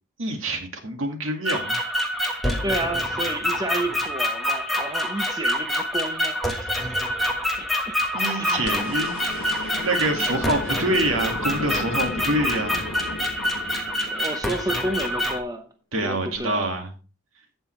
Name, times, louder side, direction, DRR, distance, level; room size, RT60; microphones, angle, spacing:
voice 1, 0.2-1.8 8.1-9.4 9.8-12.9 15.9-16.9, right 1 dB, 80° right, 2.0 m, -26 dB
sound 1, 1.5-15.4, left 1 dB, ahead, 1.3 m, -26 dB
voice 2, 2.6-8.0 8.4-8.9 14.0-15.7 16.0-16.7, right 1 dB, 15° right, 0.8 m, -31 dB
sound 2, 8.6-14.8 16.3-16.4, left 2 dB, 85° left, 1.0 m, -35 dB
15.0 x 5.5 x 3.2 m
head